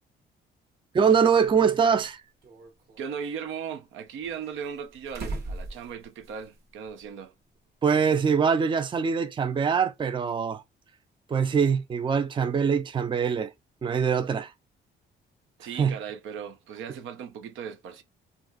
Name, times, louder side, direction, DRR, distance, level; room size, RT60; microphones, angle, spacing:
voice 1, 0.9-2.2 7.8-10.6 11.3-13.5 13.8-14.5 15.8-16.0, right 6 dB, 25° right, 0.4 m, -23 dB
sound 1, 1.4-1.5 2.4-3.3 4.2-6.6 6.9-7.0 8.6-8.7, right 2 dB, 55° right, 1.1 m, -39 dB
voice 2, 3.0-7.3 15.6-18.0, right 7 dB, 80° right, 0.6 m, -37 dB
2.5 x 2.3 x 3.9 m
cardioid pair, 90°, 20 cm